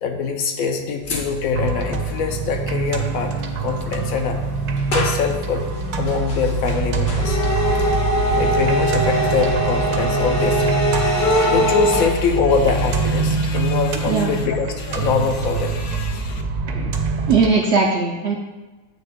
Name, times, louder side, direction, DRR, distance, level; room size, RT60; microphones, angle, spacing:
voice 1, 0.0-3.3 3.6-4.4 4.9-5.6 6.0-7.4 8.4-10.7 11.1-16.4, left 5 dB, 70° left, 5 dB, 1.0 m, -23 dB
sound 1, 1.0-14.3, left 3 dB, 45° left, 0.8 m, -36 dB
sound 2, 1.5-17.5, right 4 dB, 85° right, 1.1 m, -24 dB
sound 3, 7.1-12.1, equal, 20° left, 0.5 m, -21 dB
voice 2, 17.3-18.3, right 4 dB, 65° right, 0 dB, 0.7 m, -19 dB
8.1 x 3.3 x 3.5 m, 1.2 s
omnidirectional pair, 1.6 m